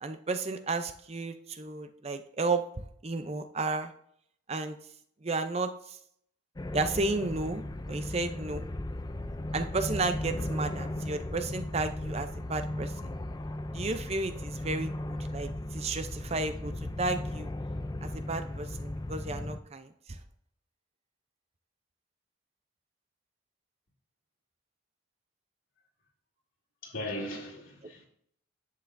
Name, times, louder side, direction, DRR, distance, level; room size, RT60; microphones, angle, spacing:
voice 1, 0.0-3.9 4.5-4.8 5.2-6.0 6.7-7.6 7.9-8.6 9.5-13.1 13.7-16.7 17.0-17.5 18.0-20.2, right 3 dB, 30° right, 0.5 m, -33 dB
sound 1, 6.6-19.6, left 1 dB, 20° left, 0.4 m, -36 dB
voice 2, 26.8-28.1, left 1 dB, 80° left, 2.7 m, -38 dB
10.0 x 8.1 x 2.6 m
head